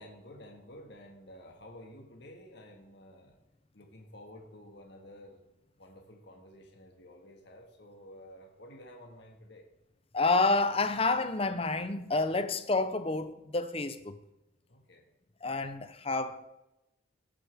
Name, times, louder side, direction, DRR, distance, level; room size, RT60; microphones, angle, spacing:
voice 1, 0.0-3.4 3.7-5.4 5.8-9.7 14.7-15.0, left 1 dB, 55° left, 1.7 m, -51 dB
voice 2, 10.1-14.2 15.4-16.5, left 3 dB, 30° left, 0.7 m, -29 dB
17.5 x 8.6 x 3.5 m
head